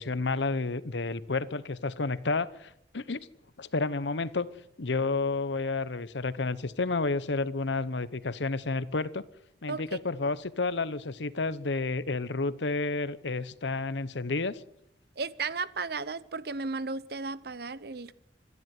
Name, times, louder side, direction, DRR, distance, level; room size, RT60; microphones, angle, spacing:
voice 1, 0.0-3.3 3.6-4.5 4.8-9.2 9.6-14.6, left 3 dB, 85° left, 0.9 m, -30 dB
voice 2, 15.2-18.1, right 4 dB, 60° right, 0.9 m, -34 dB
26.0 x 11.0 x 9.4 m
head